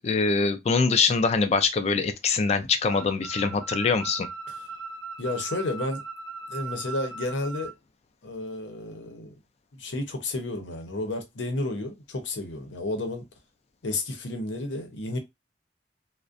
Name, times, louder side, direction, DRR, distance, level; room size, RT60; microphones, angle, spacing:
voice 1, 0.0-4.3, left 4 dB, 35° left, 0.3 m, -23 dB
sound 1, 2.9-7.7, right 4 dB, 90° right, 0.6 m, -38 dB
voice 2, 5.2-6.0 6.5-7.7 8.2-9.3 9.8-13.3 13.8-15.2, left 2 dB, 90° left, 0.7 m, -31 dB
2.4 x 2.1 x 2.5 m
head